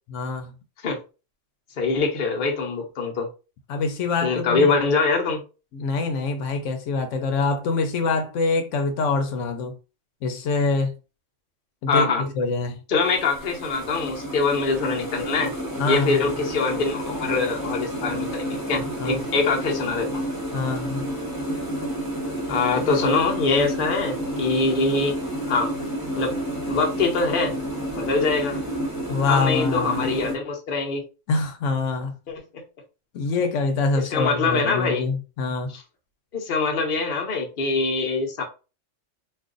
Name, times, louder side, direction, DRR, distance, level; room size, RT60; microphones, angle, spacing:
voice 1, 0.1-0.5 3.7-4.7 5.7-9.7 10.2-10.9 11.8-12.8 15.8-16.2 19.0-19.2 20.5-21.1 29.1-30.1 31.3-32.1 33.1-35.7, left 3 dB, 80° left, 1.0 m, -25 dB
voice 2, 1.8-3.3 4.2-5.4 11.9-12.2 12.9-15.5 15.8-20.2 22.5-25.2 25.4-25.7 26.1-26.4 26.7-27.6 27.9-28.6 29.3-31.0 32.3-32.6 34.1-35.1 35.7-35.8 36.3-38.4, left 4 dB, 50° left, 0.9 m, -24 dB
sound 1, 13.0-30.4, right 1 dB, 20° right, 0.9 m, -30 dB
2.5 x 2.4 x 3.7 m
omnidirectional pair, 1.3 m